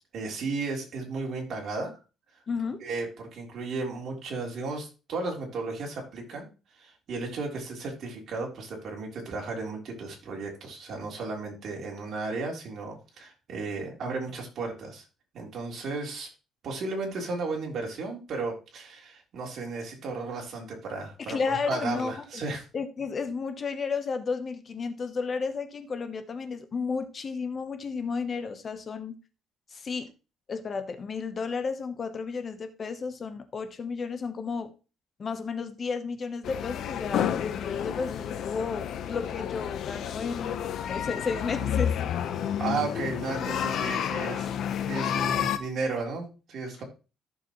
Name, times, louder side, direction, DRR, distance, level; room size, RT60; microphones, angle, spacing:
voice 1, 0.1-1.9 2.8-6.5 6.8-15.0 15.3-16.3 16.6-22.6 42.6-44.5 44.9-46.8, right 3 dB, 50° right, 3.5 m, -34 dB
voice 2, 2.5-2.8 21.2-22.4 22.7-29.2 29.7-30.1 30.5-34.7 35.2-41.9, left 5 dB, 35° left, 0.9 m, -33 dB
sound 1, 36.4-45.6, left 9 dB, 60° left, 0.9 m, -30 dB
14.0 x 6.8 x 3.1 m
cardioid pair, 140°, 0 cm